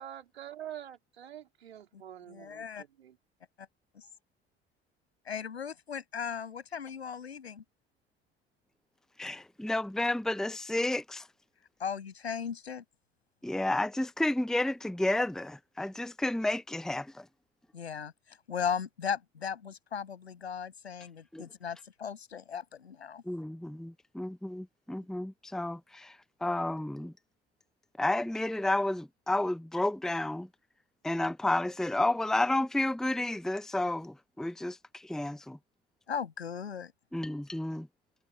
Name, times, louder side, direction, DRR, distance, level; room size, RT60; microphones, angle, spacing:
voice 1, 0.0-3.2, right 10 dB, 80° right, 3.9 m, -46 dB
voice 2, 2.3-2.8 3.6-3.7 3.9-4.1 5.2-7.6 11.8-12.8 17.7-23.2 36.1-36.9, left 7 dB, 80° left, 7.4 m, -37 dB
voice 3, 9.2-11.3 13.4-17.2 21.3-21.4 23.3-26.2 26.4-27.1 28.0-30.5 31.0-35.6 37.1-37.9, left 1 dB, ahead, 0.9 m, -31 dB
figure-of-eight pair, 55°, 31 cm